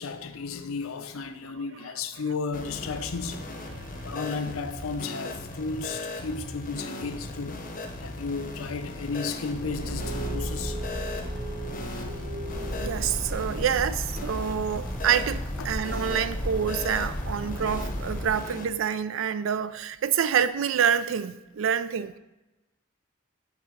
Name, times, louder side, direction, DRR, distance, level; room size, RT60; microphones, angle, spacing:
voice 1, 0.0-3.4 4.0-7.6 8.0-10.8 15.6-15.7 17.4-17.5, left 4 dB, 85° left, 0.5 m, -33 dB
sound 1, 2.5-18.7, left 2 dB, 40° left, 0.7 m, -38 dB
voice 2, 3.7-4.1 12.8-22.2, right 8 dB, 65° right, 0.4 m, -27 dB
Car / Engine, 9.1-13.6, right 1 dB, 50° right, 1.1 m, -35 dB
sound 2, 12.5-18.3, equal, 5° left, 0.5 m, -34 dB
8.1 x 3.7 x 4.6 m
head